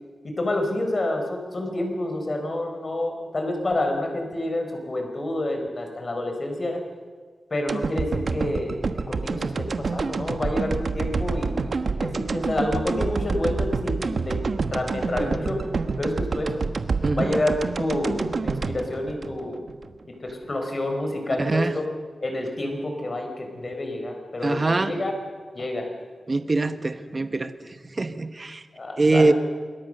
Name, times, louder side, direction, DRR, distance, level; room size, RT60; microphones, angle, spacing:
voice 1, 0.2-6.8 7.5-14.4 14.7-15.6 16.0-16.6 17.1-19.6 20.2-21.8 22.2-25.1 25.6-25.9 28.8-29.3, left 1 dB, 35° left, 4 dB, 4.5 m, -28 dB
sound 1, 7.7-19.9 20.3-20.4, right 4 dB, 55° right, 1.1 m, -28 dB
voice 2, 21.4-21.7 24.4-24.9 26.3-27.5 27.9-28.6 29.0-29.3, right 3 dB, 35° right, 10 dB, 1.3 m, -23 dB
27.5 x 21.5 x 6.7 m, 1.5 s
wide cardioid pair, 125°, 0 cm